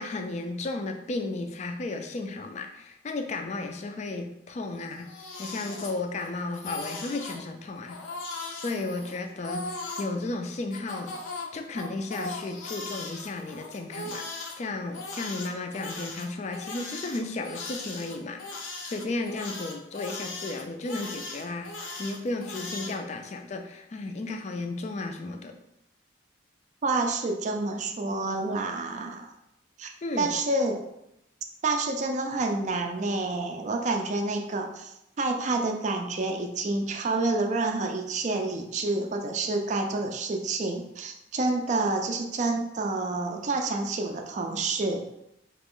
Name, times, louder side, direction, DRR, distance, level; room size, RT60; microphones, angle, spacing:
voice 1, 0.0-5.1 5.4-8.0 8.5-11.2 11.5-21.7 22.0-25.6 30.0-30.3, left 2 dB, 35° left, 5 dB, 0.3 m, -34 dB
Crying sobbing, 4.8-6.3 6.5-7.4 7.9-10.1 10.7-14.6 14.9-23.0, left 3 dB, 85° left, 0.6 m, -38 dB
voice 2, 26.8-29.3 29.8-29.9 30.2-30.8 31.6-45.0, right 3 dB, 40° right, 4 dB, 0.4 m, -28 dB
2.9 x 2.4 x 3.6 m, 0.84 s
head